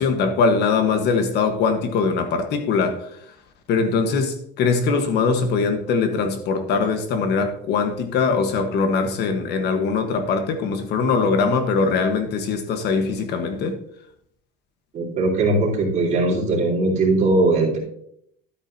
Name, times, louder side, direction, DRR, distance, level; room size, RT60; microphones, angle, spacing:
voice 1, 0.0-3.2 3.7-13.8, left 4 dB, 50° left, 6 dB, 1.2 m, -21 dB
voice 2, 14.9-17.8, right 2 dB, 35° right, -3 dB, 3.9 m, -20 dB
12.5 x 8.7 x 2.7 m, 0.70 s
cardioid pair, 160°, 21 cm